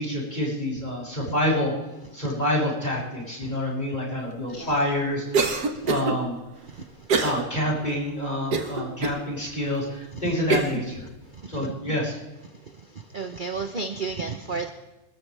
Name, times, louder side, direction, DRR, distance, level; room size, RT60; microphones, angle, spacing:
voice 1, 0.0-1.7 2.1-6.3 7.2-11.1 11.5-12.2, left 1 dB, 30° left, -4 dB, 6.9 m, -27 dB
Cough, 5.3-6.2 7.1-7.4 7.9-8.0 8.5-9.2 9.8-9.9 10.5-10.8, right 4 dB, 90° right, 2.1 m, -24 dB
voice 2, 6.7-7.1 10.2-10.3 11.3-11.7 12.9-14.7, right 4 dB, 35° right, 6 dB, 1.0 m, -33 dB
28.0 x 13.5 x 3.5 m, 1.0 s
omnidirectional pair, 1.7 m